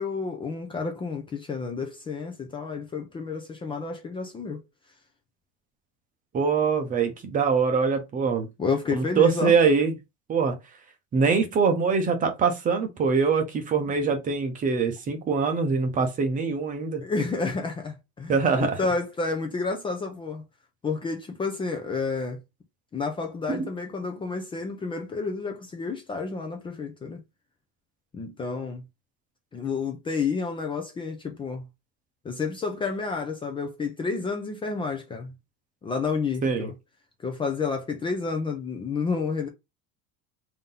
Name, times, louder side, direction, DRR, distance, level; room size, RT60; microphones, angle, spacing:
voice 1, 0.0-4.6 8.6-9.6 17.0-20.4 20.8-22.4 22.9-27.2 28.1-28.8 29.5-31.6 32.2-35.3 35.8-36.8 37.2-39.5, left 4 dB, 15° left, 0.5 m, -30 dB
voice 2, 6.3-8.5 8.9-9.9 10.3-10.5 11.1-17.0 18.3-18.8 23.5-23.6 36.4-36.7, right 5 dB, 25° right, 0.8 m, -23 dB
3.6 x 2.8 x 3.6 m
cardioid pair, 165°, 30 cm